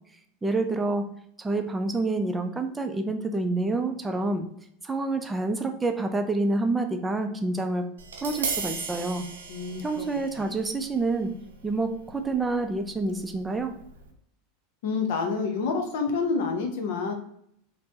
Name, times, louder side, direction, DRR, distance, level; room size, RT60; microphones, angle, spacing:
voice 1, 0.4-4.5 4.8-7.9 8.2-9.2 9.8-11.3 11.6-13.7, right 2 dB, 15° right, 5 dB, 0.4 m, -28 dB
Tap, 8.0-14.1, right 5 dB, 85° right, 0.6 m, -38 dB
voice 2, 9.5-9.8 10.4-10.5 14.8-17.1, left 4 dB, 70° left, 3 dB, 0.7 m, -28 dB
4.1 x 2.1 x 2.7 m, 0.69 s
hypercardioid pair, 100°, 0 cm